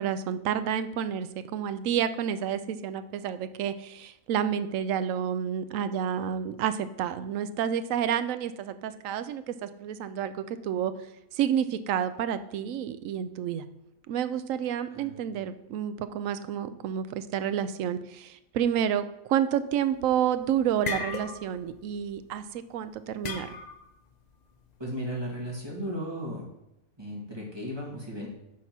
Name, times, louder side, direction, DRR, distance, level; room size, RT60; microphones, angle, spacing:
voice 1, 0.0-10.9 11.3-13.7 14.1-19.0 19.3-23.6, right 9 dB, 80° right, 12 dB, 1.0 m, -29 dB
sound 1, 20.0-20.3 20.6-21.7 22.0-22.2 23.2-23.9, left 5 dB, 45° left, 0.6 m, -35 dB
voice 2, 24.8-26.4 27.0-28.3, equal, 20° right, -3 dB, 2.1 m, -35 dB
8.8 x 4.3 x 6.0 m, 0.84 s
omnidirectional pair, 1.4 m